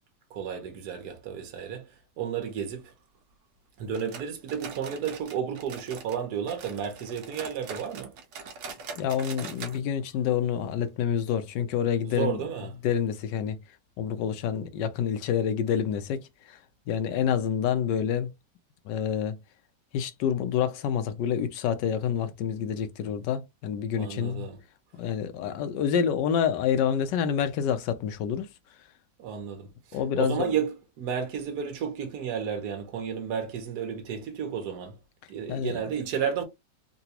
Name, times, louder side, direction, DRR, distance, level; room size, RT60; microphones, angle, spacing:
voice 1, 0.3-2.9 3.8-8.2 12.0-12.7 24.0-24.6 29.2-35.0 35.3-36.4, right 7 dB, 65° right, 1.4 m, -32 dB
sound 1, 3.9-6.2 6.5-9.8 10.1-10.2 10.6-10.7 11.2-11.3, right 5 dB, 85° right, 1.4 m, -42 dB
voice 2, 9.0-12.4 12.8-13.6 14.0-16.6 16.9-18.3 18.8-19.4 19.9-24.5 24.9-28.5 29.9-30.5 35.5-35.8, left 8 dB, 80° left, 1.2 m, -28 dB
3.9 x 2.3 x 2.8 m
omnidirectional pair, 1.9 m